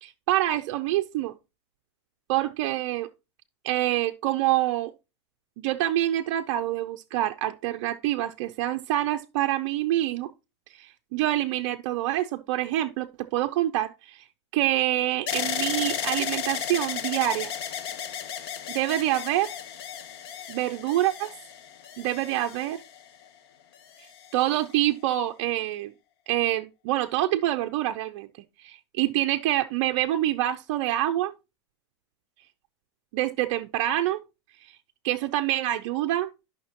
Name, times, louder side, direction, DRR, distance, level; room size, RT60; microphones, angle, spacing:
voice 1, 0.0-1.3 2.3-3.1 3.6-4.9 5.6-10.3 10.8-14.2 14.5-17.5 18.7-19.5 20.5-21.3 22.0-22.8 24.3-25.9 26.3-28.3 28.6-31.3 33.1-34.2 35.0-36.3, right 14 dB, 45° right, 0.5 m, -26 dB
sound 1, 15.3-23.3 24.0-24.6, left 9 dB, 55° left, 1.1 m, -34 dB
11.5 x 5.8 x 2.9 m
supercardioid pair, 155°, 15 cm